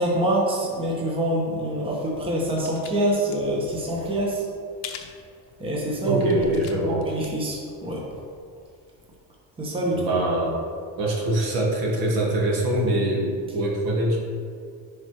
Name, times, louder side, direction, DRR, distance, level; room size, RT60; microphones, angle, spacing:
voice 1, 0.0-4.4 5.6-6.5 6.8-8.0 9.6-10.1, right 1 dB, 15° right, -3 dB, 1.1 m, -25 dB
sound 1, 1.9-2.9 3.2-3.4 4.8-5.2 5.7-5.8 6.2-7.3 7.6-7.7, left 8 dB, 45° left, 0.8 m, -40 dB
voice 2, 6.1-7.0 9.9-10.6 11.0-14.2, right 1 dB, 65° right, -1 dB, 1.8 m, -24 dB
10.5 x 5.0 x 3.1 m, 2.3 s
cardioid pair, 145°, 40 cm